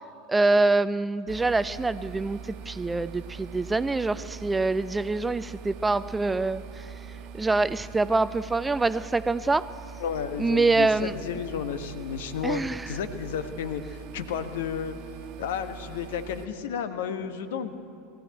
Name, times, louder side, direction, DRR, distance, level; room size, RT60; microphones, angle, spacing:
voice 1, 0.3-6.9 7.3-9.7 10.4-11.1 12.4-12.9, right 3 dB, 10° right, 15 dB, 0.4 m, -25 dB
sound 1, 1.3-16.5, right 7 dB, 50° right, 1.3 m, -43 dB
voice 2, 10.0-14.9 15.4-17.7, left 7 dB, 60° left, 9 dB, 1.3 m, -32 dB
20.0 x 14.0 x 9.1 m, 2.6 s
figure-of-eight pair, 80°, 0 cm